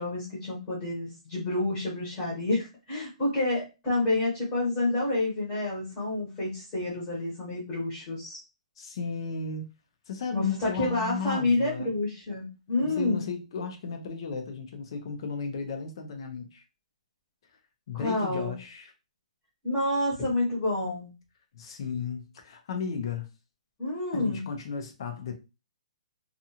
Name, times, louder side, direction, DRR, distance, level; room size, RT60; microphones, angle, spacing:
voice 1, 0.0-8.4 10.3-13.2 17.9-18.5 19.6-21.1 23.8-24.5, left 2 dB, 15° left, 1.1 m, -29 dB
voice 2, 8.8-9.6 10.1-11.9 12.8-16.6 17.9-18.9 21.5-23.3 24.1-25.3, left 5 dB, 45° left, 0.6 m, -35 dB
2.5 x 2.4 x 2.8 m
hypercardioid pair, 170°, 4 cm